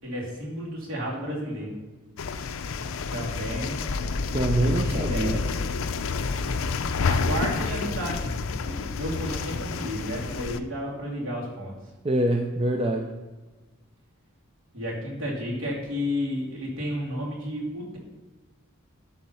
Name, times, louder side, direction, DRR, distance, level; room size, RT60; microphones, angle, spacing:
voice 1, 0.0-1.8 3.1-3.8 4.5-5.5 7.1-11.7 14.7-18.0, equal, 65° right, -4 dB, 2.9 m, -32 dB
sound 1, 2.2-10.6, left 4 dB, 70° left, 0.5 m, -29 dB
voice 2, 4.3-5.4 12.0-13.1, right 1 dB, 25° right, 3 dB, 0.5 m, -24 dB
12.5 x 4.2 x 5.6 m, 1.2 s
head